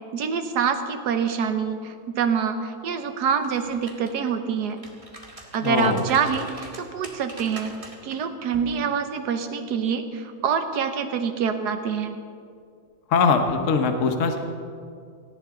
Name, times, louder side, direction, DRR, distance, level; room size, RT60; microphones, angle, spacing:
voice 1, 0.1-4.8 5.5-7.7 8.0-12.2, right 6 dB, 60° right, 8 dB, 1.4 m, -26 dB
sound 1, 3.3-4.3 4.7-8.2 8.5-8.7, right 2 dB, 20° right, 1.3 m, -43 dB
voice 2, 5.6-6.0 13.1-14.4, left 5 dB, 45° left, 5 dB, 1.2 m, -21 dB
18.0 x 15.0 x 3.8 m, 2.3 s
omnidirectional pair, 2.1 m